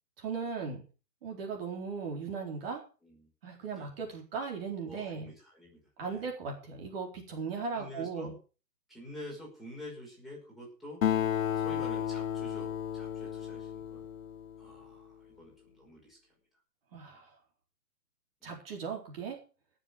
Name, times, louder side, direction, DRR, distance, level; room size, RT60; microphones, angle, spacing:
voice 1, 0.2-0.8 1.2-2.8 3.4-5.3 6.0-8.3 16.9-17.4 18.4-19.4, right 5 dB, 35° right, 1 dB, 4.1 m, -37 dB
voice 2, 4.9-6.3 7.7-8.3 8.9-11.0 11.5-14.1 14.6-16.2 17.1-17.2 18.4-18.6, left 1 dB, ahead, -5 dB, 5.2 m, -48 dB
Acoustic guitar, 11.0-14.8, left 9 dB, 55° left, 0.6 m, -33 dB
18.0 x 7.4 x 6.5 m, 0.36 s
hypercardioid pair, 160°, 49 cm